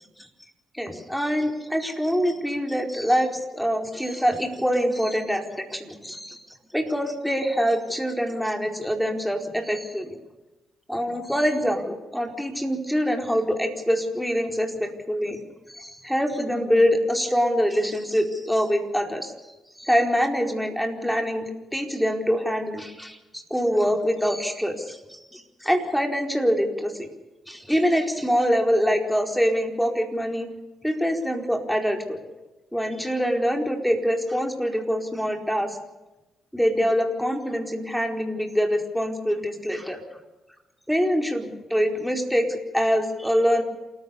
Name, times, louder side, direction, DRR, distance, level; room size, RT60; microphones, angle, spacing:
voice 1, 0.7-6.4 6.7-10.1 10.9-15.4 15.7-19.3 19.8-21.5 21.7-27.1 27.5-30.5 30.8-32.2 32.7-35.8 36.5-40.0 40.9-43.6, equal, ahead, 4 dB, 4.6 m, -24 dB
28.5 x 14.5 x 7.0 m, 1.1 s
hypercardioid pair, 45°, 0 cm